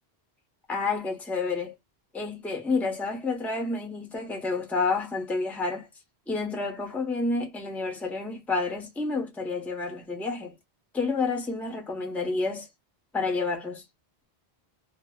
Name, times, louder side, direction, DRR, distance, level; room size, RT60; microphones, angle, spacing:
voice 1, 0.7-1.7 2.1-5.9 6.3-10.5 10.9-12.7 13.1-13.8, left 3 dB, ahead, 0.5 m, -29 dB
2.1 x 2.0 x 3.6 m
omnidirectional pair, 1.1 m